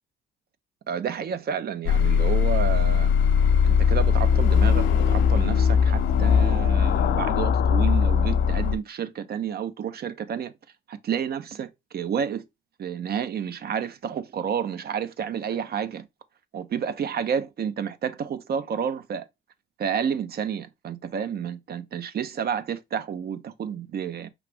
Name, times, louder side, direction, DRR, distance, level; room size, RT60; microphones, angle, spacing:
voice 1, 0.9-3.1 3.6-10.5 10.9-12.4 12.8-16.1 16.5-19.3 19.8-24.3, right 8 dB, 50° right, 0.6 m, -30 dB
sound 1, 1.9-8.8, left 7 dB, 70° left, 0.5 m, -20 dB
5.0 x 3.2 x 3.3 m
cardioid pair, 90°, 20 cm